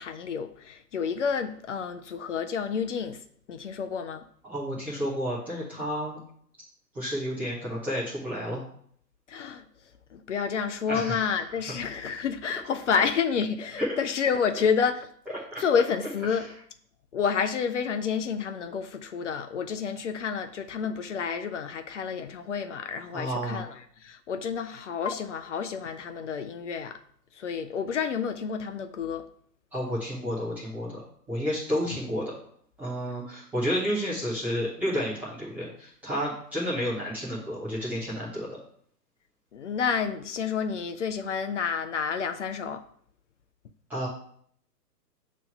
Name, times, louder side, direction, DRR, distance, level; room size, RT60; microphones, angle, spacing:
voice 1, 0.0-3.2 3.5-4.2 9.3-9.6 10.1-15.1 15.6-16.5 17.1-27.0 27.3-29.2 39.5-42.8, left 6 dB, 50° left, 8 dB, 0.5 m, -29 dB
voice 2, 4.4-6.2 6.9-8.6 10.9-11.4 13.8-13.9 15.3-15.6 16.3-16.5 23.1-23.6 29.7-31.0 31.3-32.2 32.8-38.6 43.9-44.1, equal, 5° right, -9 dB, 0.5 m, -31 dB
6.8 x 3.2 x 5.3 m, 0.63 s
figure-of-eight pair, 120°, 48 cm